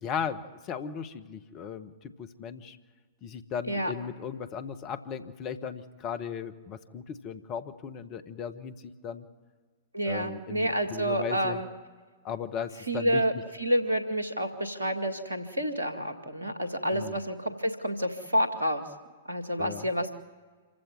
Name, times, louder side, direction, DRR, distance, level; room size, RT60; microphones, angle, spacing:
voice 1, 0.0-2.8 3.2-8.8 9.0-9.2 10.0-11.6 12.2-13.2 16.9-17.2 19.6-19.9, left 7 dB, 35° left, 12 dB, 1.4 m, -36 dB
voice 2, 9.9-11.7 12.9-13.3 13.6-18.8 19.3-20.1, equal, 85° right, 8 dB, 2.2 m, -29 dB
27.0 x 15.5 x 9.4 m, 1.5 s
figure-of-eight pair, 105°, 0 cm